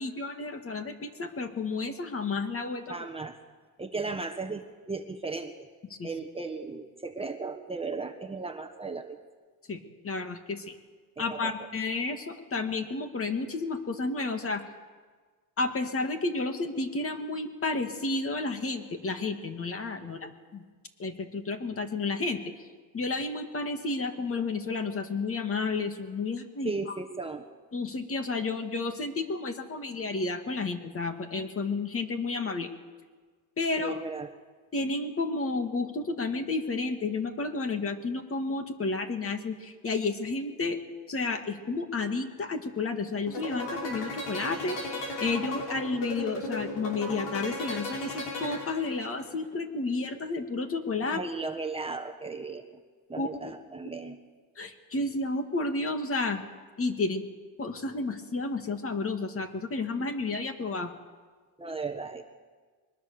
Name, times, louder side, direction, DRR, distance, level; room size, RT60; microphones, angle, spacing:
voice 1, 0.0-3.0 6.0-6.1 9.7-9.8 10.0-10.6 11.2-14.6 15.6-20.6 21.0-22.4 22.9-26.7 27.7-32.7 33.6-34.0 34.7-40.8 41.1-51.2 53.2-53.5 54.6-56.4 56.8-57.2 57.6-60.9, left 3 dB, 35° left, 6 dB, 2.3 m, -31 dB
voice 2, 2.9-3.4 3.8-5.7 6.0-9.2 11.2-11.7 20.0-20.3 26.6-27.4 33.8-34.3 51.0-52.7 53.1-54.2 61.6-62.2, right 4 dB, 15° right, 3 dB, 1.3 m, -36 dB
sound 1, 43.3-49.2, left 2 dB, 90° left, 7.5 m, -35 dB
23.0 x 20.0 x 7.0 m, 1.5 s
cardioid pair, 110°, 41 cm